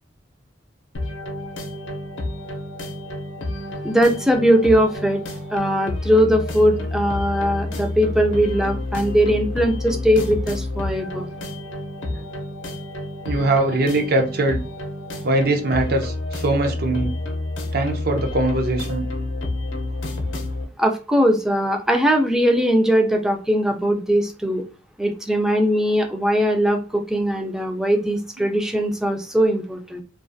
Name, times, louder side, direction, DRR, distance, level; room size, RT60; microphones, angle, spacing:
sound 1, 0.9-20.6, left 2 dB, 80° left, 0.5 m, -29 dB
voice 1, 3.8-5.2 5.5-11.3 20.8-24.6 25.0-30.0, equal, 5° right, 3 dB, 0.3 m, -20 dB
voice 2, 13.2-14.6 15.2-17.1 17.7-19.0 28.4-28.5, right 2 dB, 55° right, 4 dB, 0.5 m, -21 dB
2.3 x 2.3 x 2.5 m, 0.33 s
head